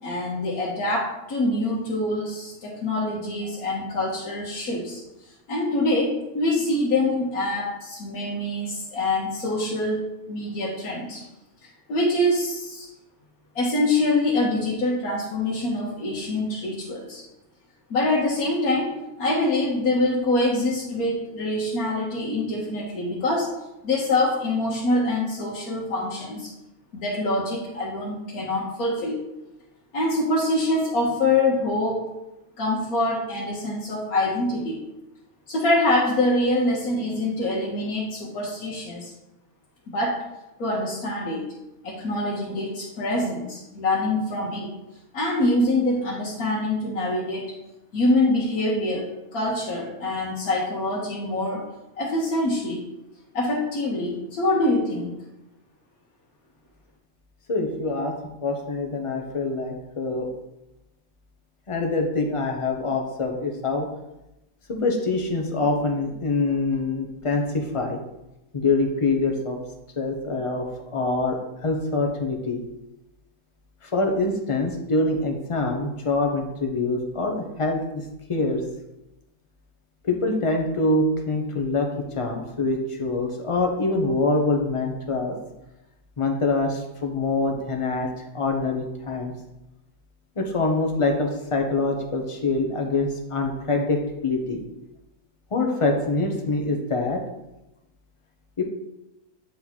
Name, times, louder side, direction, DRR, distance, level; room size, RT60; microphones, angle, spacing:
voice 1, 0.0-5.0 5.5-11.2 11.9-12.9 13.5-17.2 17.9-23.5 23.8-26.5 26.9-29.2 29.9-32.1 32.6-34.8 35.5-39.1 39.9-40.2 40.6-41.5 41.8-44.7 45.1-47.5 47.9-51.6 52.0-52.8 53.3-55.1, left 2 dB, 75° left, -6 dB, 1.5 m, -25 dB
voice 2, 57.5-58.1 58.4-60.3 61.7-63.9 64.7-68.0 68.5-69.6 70.0-70.6 70.9-71.4 71.6-72.6 73.9-78.0 78.3-78.6 80.0-81.9 82.2-85.3 86.2-88.1 88.3-89.3 90.4-94.6 95.5-97.2 98.6-98.7, left 3 dB, 35° left, 2 dB, 0.5 m, -25 dB
8.3 x 3.0 x 4.0 m, 0.92 s
omnidirectional pair, 1.5 m